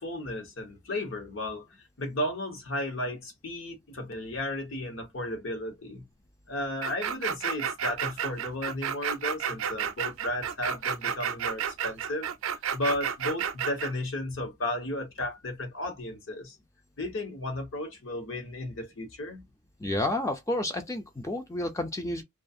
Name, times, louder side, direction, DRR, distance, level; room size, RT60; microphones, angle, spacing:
voice 1, 0.0-6.0 6.5-16.6 17.0-19.4, left 1 dB, 65° left, 1.0 m, -34 dB
sound 1, 6.8-13.9, right 8 dB, 70° right, 0.4 m, -31 dB
voice 2, 19.8-22.2, left 1 dB, 15° left, 0.4 m, -30 dB
2.4 x 2.4 x 2.6 m
head